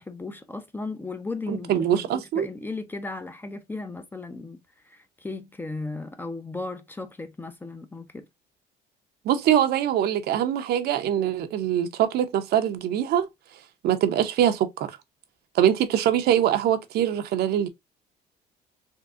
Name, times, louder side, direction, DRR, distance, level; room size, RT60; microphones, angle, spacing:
voice 1, 0.0-4.6 4.8-8.3, left 3 dB, 10° left, 0.5 m, -36 dB
voice 2, 1.5-2.5 9.2-13.3 13.8-14.9 15.5-17.7, right 10 dB, 70° right, 0.6 m, -23 dB
3.7 x 2.6 x 2.3 m
cardioid pair, 110°, 17 cm